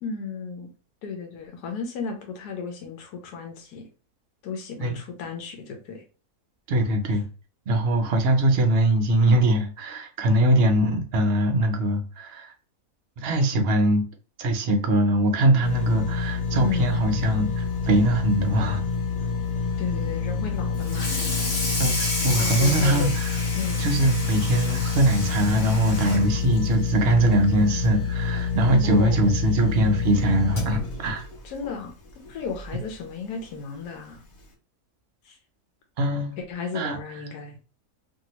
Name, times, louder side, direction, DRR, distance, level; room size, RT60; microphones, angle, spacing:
voice 1, 0.0-0.7 1.0-3.9 4.4-6.0 7.1-7.2 16.6-17.1 19.8-21.2 22.4-23.1 23.6-23.8 28.8-29.2 31.4-31.9 32.3-34.2 35.2-35.4 36.4-37.6, left 5 dB, 85° left, 1.3 m, -34 dB
voice 2, 6.7-7.3 7.7-12.5 13.2-14.0 14.4-18.8 21.8-23.3 23.8-31.2 36.0-36.4 36.7-37.0, right 1 dB, 60° right, 0.6 m, -22 dB
sound 1, 15.6-32.8 33.3-33.4, left 5 dB, 65° left, 1.2 m, -28 dB
Water tap faucet / Sink (filling or washing), 20.8-27.4 27.8-28.1 28.4-28.5 28.9-29.0 30.1-30.2 30.7-30.9, left 2 dB, 45° left, 1.2 m, -31 dB
2.7 x 2.7 x 2.9 m
omnidirectional pair, 1.7 m